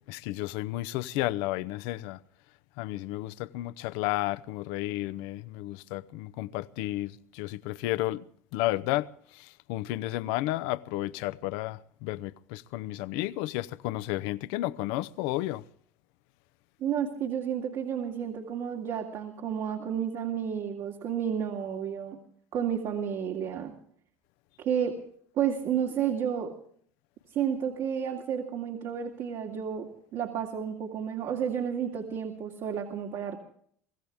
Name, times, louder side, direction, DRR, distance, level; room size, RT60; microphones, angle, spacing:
voice 1, 0.1-2.2 2.8-8.2 8.5-9.1 9.4-15.6, left 17 dB, 70° left, 0.8 m, -32 dB
voice 2, 16.8-22.2 22.5-23.7 24.6-25.0 25.4-26.5 27.3-33.4, right 8 dB, 60° right, 2.6 m, -31 dB
24.0 x 16.0 x 3.6 m
hypercardioid pair, 85°, 8 cm